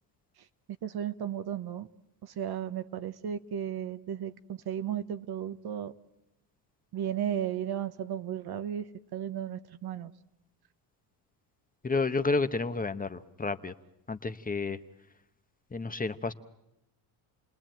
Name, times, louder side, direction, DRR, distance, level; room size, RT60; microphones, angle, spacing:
voice 1, 0.8-1.9 2.2-5.9 6.9-10.1, right 9 dB, 50° right, 1.2 m, -34 dB
voice 2, 11.8-13.7 14.1-14.8 15.7-16.3, left 3 dB, 20° left, 1.0 m, -30 dB
30.0 x 20.0 x 9.1 m
cardioid pair, 95°, 48 cm